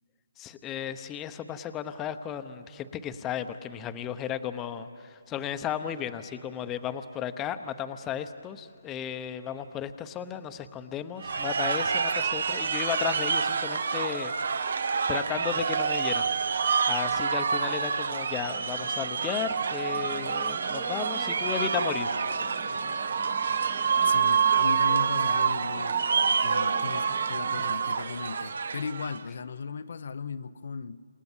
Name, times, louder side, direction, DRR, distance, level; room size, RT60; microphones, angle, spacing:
voice 1, 0.4-14.3 14.6-16.3 16.8-22.1, left 9 dB, 15° left, 0.9 m, -34 dB
sound 1, 11.2-29.2, right 6 dB, 65° right, 1.0 m, -27 dB
sound 2, 18.4-28.1, right 7 dB, 20° right, 1.1 m, -47 dB
voice 2, 24.0-26.0 26.4-31.1, left 5 dB, 60° left, 0.8 m, -37 dB
29.0 x 27.5 x 7.4 m
hypercardioid pair, 155°, 0 cm